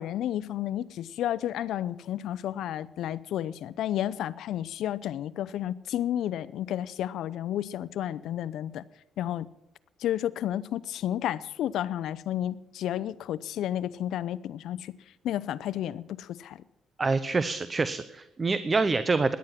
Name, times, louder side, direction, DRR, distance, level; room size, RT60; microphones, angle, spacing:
voice 1, 0.0-8.8 9.2-9.5 10.0-14.9 15.2-16.6, left 11 dB, 80° left, 0.7 m, -31 dB
voice 2, 17.0-19.4, right 3 dB, 30° right, 0.9 m, -26 dB
17.0 x 11.5 x 5.9 m
cardioid pair, 90°, 0 cm